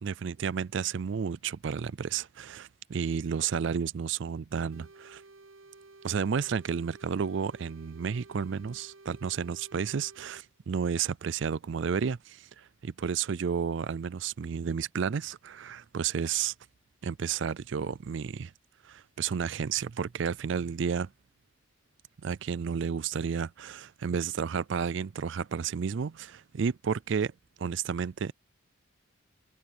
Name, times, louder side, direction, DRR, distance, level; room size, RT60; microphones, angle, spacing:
voice 1, 0.0-5.2 6.0-16.5 17.0-18.5 18.8-21.1 22.2-27.3 27.6-28.3, right 6 dB, 60° right, 0.4 m, -32 dB
sound 1, 4.7-10.4, right 3 dB, 80° right, 0.8 m, -53 dB
head